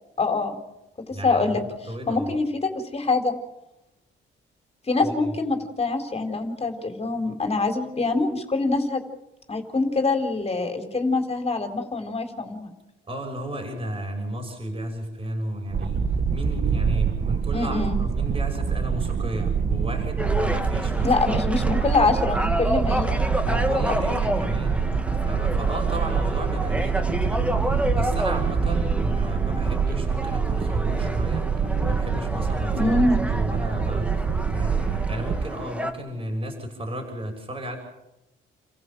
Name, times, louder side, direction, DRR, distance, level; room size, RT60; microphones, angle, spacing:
voice 1, 0.2-0.6 1.2-1.6 2.1-3.3 4.9-9.0 9.5-12.7 17.5-18.0 21.0-23.2 23.5-23.9 24.3-24.5 32.8-33.2, left 3 dB, 30° left, 5 dB, 4.2 m, -24 dB
voice 2, 1.1-2.3 5.0-5.3 13.1-21.4 23.4-24.9 25.2-33.0 33.3-37.8, right 1 dB, 30° right, 2 dB, 6.7 m, -34 dB
sound 1, 15.7-35.4, right 6 dB, 50° right, 1.7 m, -25 dB
sound 2, 20.2-35.9, equal, 5° right, 2.6 m, -30 dB
30.0 x 15.5 x 7.7 m, 0.92 s
cardioid pair, 90°, 20 cm